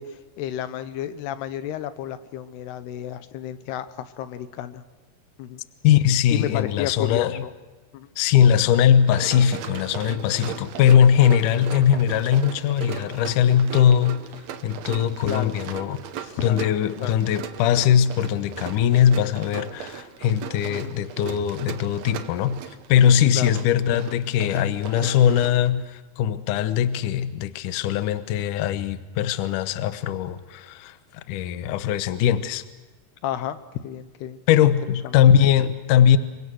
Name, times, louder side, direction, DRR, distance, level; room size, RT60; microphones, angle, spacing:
voice 1, 0.0-4.8 5.4-5.6 6.3-7.5 7.9-8.1 15.2-15.6 16.4-16.7 17.0-17.2 20.7-20.9 23.3-23.5 33.2-34.4 35.0-35.2, left 11 dB, 85° left, 11 dB, 3.1 m, -32 dB
voice 2, 5.8-7.4 8.2-14.2 14.6-22.6 22.9-31.0 31.3-32.6 34.5-36.2, left 9 dB, 70° left, 11 dB, 2.2 m, -20 dB
Run, 9.0-25.7, right 9 dB, 70° right, 1.6 m, -38 dB
29.0 x 24.0 x 6.3 m, 1.2 s
omnidirectional pair, 4.6 m